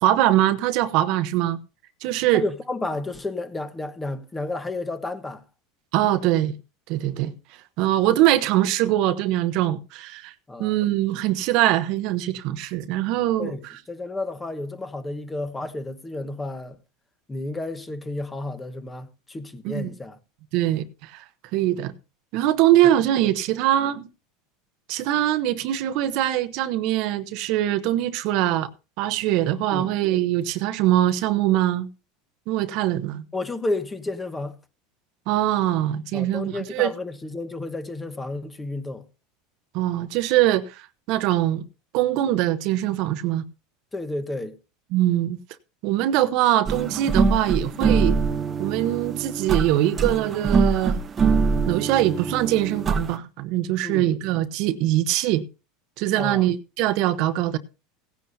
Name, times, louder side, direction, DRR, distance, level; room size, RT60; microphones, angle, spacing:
voice 1, 0.0-1.6 2.0-2.4 5.9-6.5 6.9-7.3 7.8-10.3 10.6-13.5 19.6-19.9 20.5-21.3 21.5-21.9 22.3-24.1 24.9-28.7 29.0-31.9 32.5-33.3 35.3-36.9 39.7-41.6 41.9-43.4 44.9-45.4 45.8-48.2 48.6-51.0 51.7-55.4 56.0-57.6, right 13 dB, 60° right, 0.9 m, -22 dB
voice 2, 2.3-5.4 10.5-10.8 13.4-16.8 17.3-20.2 22.8-22.9 29.7-29.9 33.3-34.6 36.1-39.0 43.9-44.6 53.8-54.1 56.2-56.5, left 2 dB, 10° left, 1.2 m, -31 dB
sound 1, 46.7-53.2, right 4 dB, 25° right, 0.8 m, -23 dB
16.5 x 10.5 x 2.7 m
supercardioid pair, 130°, 0 cm